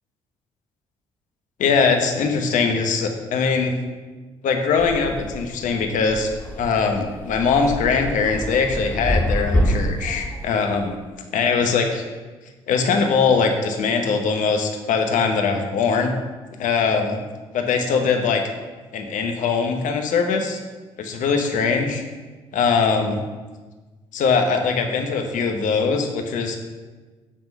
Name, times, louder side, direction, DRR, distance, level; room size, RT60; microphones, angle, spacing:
voice 1, 1.6-3.7 4.4-6.3 6.6-11.0 11.3-12.0 12.7-16.1 16.6-17.2 17.5-18.4 18.9-20.6 21.0-22.0 22.5-23.2 24.1-26.6, left 5 dB, 65° left, 4 dB, 1.0 m, -21 dB
sound 1, 4.8-10.9, equal, 10° left, 2.0 m, -26 dB
8.6 x 3.7 x 5.4 m, 1.3 s
hypercardioid pair, 50°, 14 cm